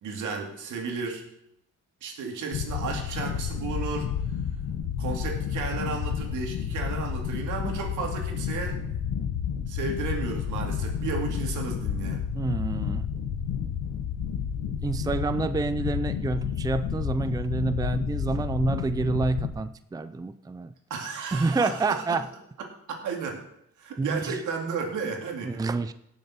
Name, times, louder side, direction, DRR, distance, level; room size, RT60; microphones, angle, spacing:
voice 1, 0.0-1.2 2.0-4.1 5.0-8.8 9.7-12.2 20.9-22.2 22.9-23.4 23.8-25.6, right 5 dB, 80° right, 2 dB, 2.5 m, -33 dB
sound 1, 2.5-19.5, left 8 dB, 85° left, 1.2 m, -31 dB
voice 2, 12.3-13.1 14.8-20.7 21.3-22.3 24.0-24.4 25.4-25.9, right 3 dB, 10° right, 12 dB, 0.5 m, -28 dB
17.0 x 6.8 x 4.3 m, 0.75 s
cardioid pair, 90°, 30 cm